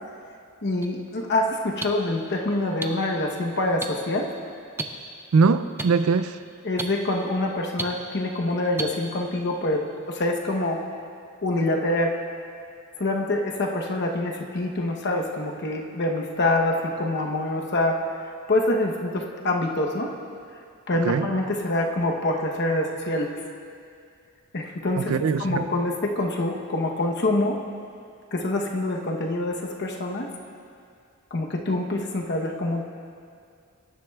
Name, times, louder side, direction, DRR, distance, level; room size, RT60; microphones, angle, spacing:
voice 1, 0.6-4.3 6.6-10.8 11.4-12.2 13.0-18.0 18.5-20.1 20.9-23.3 24.5-25.1 25.4-27.6 28.3-30.3 31.3-32.9, left 2 dB, 50° left, 1 dB, 0.9 m, -25 dB
sound 1, 0.8-0.9 1.8-1.9 2.8-2.9 3.8-3.9 4.8-4.9 5.8-5.9 6.8-6.9 7.8-7.9 8.8-8.9, right 3 dB, 10° right, 0.5 m, -28 dB
voice 2, 5.3-6.4 21.0-21.3 25.0-25.7, right 5 dB, 75° right, 12 dB, 0.4 m, -21 dB
18.0 x 10.5 x 2.3 m, 2.3 s
head